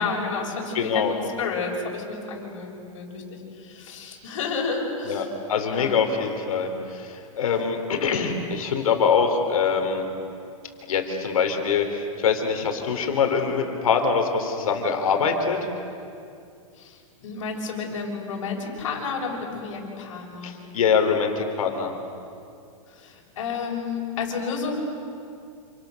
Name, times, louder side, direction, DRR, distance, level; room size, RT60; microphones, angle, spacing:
voice 1, 0.0-5.3 5.7-5.9 16.8-20.5 22.9-24.8, left 4 dB, 60° left, -1 dB, 7.0 m, -31 dB
voice 2, 0.7-1.2 5.0-10.0 10.9-15.6 20.4-21.9, left 6 dB, 80° left, 5 dB, 4.2 m, -24 dB
29.0 x 27.0 x 6.7 m, 2.5 s
supercardioid pair, 175°, 18 cm